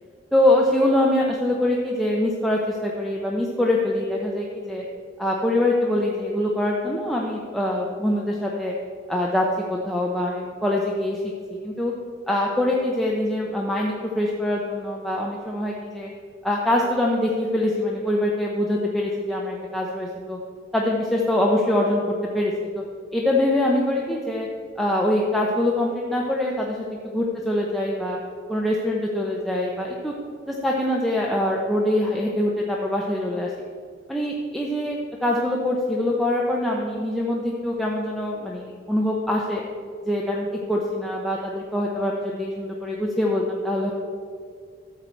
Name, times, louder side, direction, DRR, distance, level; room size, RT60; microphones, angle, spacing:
voice 1, 0.3-4.8 5.2-8.7 9.1-11.2 11.6-11.9 12.3-16.1 16.4-20.4 20.7-22.8 23.1-24.5 24.8-28.2 28.5-30.1 30.5-33.5 34.1-39.6 40.0-43.9, left 1 dB, ahead, -3 dB, 0.7 m, -24 dB
12.5 x 7.6 x 4.5 m, 2.1 s
head